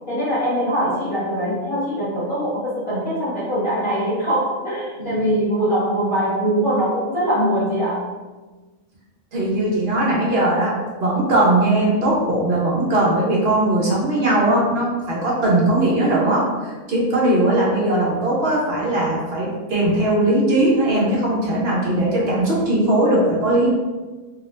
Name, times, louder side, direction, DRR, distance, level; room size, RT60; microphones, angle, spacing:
voice 1, 0.1-8.0, equal, 40° left, -10 dB, 1.3 m, -22 dB
voice 2, 9.3-23.7, right 1 dB, 55° right, -4 dB, 1.0 m, -19 dB
2.9 x 2.7 x 3.2 m, 1.3 s
omnidirectional pair, 1.4 m